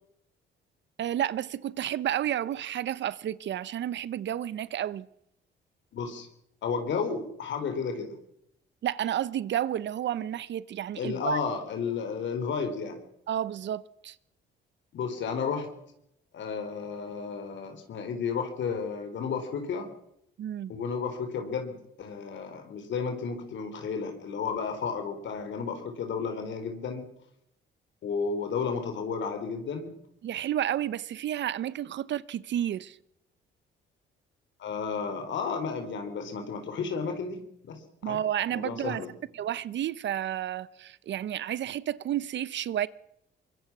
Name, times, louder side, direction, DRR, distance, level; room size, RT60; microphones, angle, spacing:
voice 1, 1.0-5.1 8.8-11.4 13.3-14.2 20.4-20.7 30.2-33.0 38.0-39.0 39.3-42.9, right 11 dB, 65° right, 0.9 m, -31 dB
voice 2, 5.9-6.3 6.6-8.2 10.9-13.0 14.9-15.7 16.3-19.9 20.7-27.0 28.0-29.8 34.6-37.8 38.1-38.2 38.5-39.1, left 5 dB, 70° left, 4.1 m, -32 dB
23.5 x 21.5 x 6.2 m
cardioid pair, 90°, 20 cm